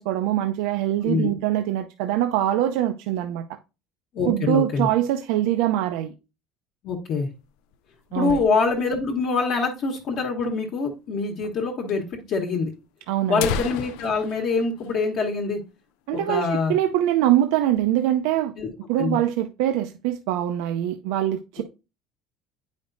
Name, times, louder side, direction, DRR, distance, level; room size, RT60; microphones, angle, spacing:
voice 1, 0.0-3.4 4.3-6.1 8.1-8.4 13.1-13.4 16.1-18.5 18.9-21.6, right 12 dB, 80° right, 0.5 m, -23 dB
voice 2, 4.1-4.9 6.8-7.3 8.1-12.7 13.3-15.6 16.1-16.7 18.6-18.7 19.0-19.2 21.6-21.7, left 4 dB, 45° left, 1.2 m, -25 dB
sound 1, 7.2-9.0 9.4-9.5 9.7-9.8 10.4-10.5 11.4-11.6 11.9-12.0 12.7-12.8 13.2-15.8 16.1-16.2 16.6-16.9 17.3-17.9, left 8 dB, 80° left, 0.5 m, -35 dB
9.1 x 5.2 x 2.6 m
cardioid pair, 175°, 0 cm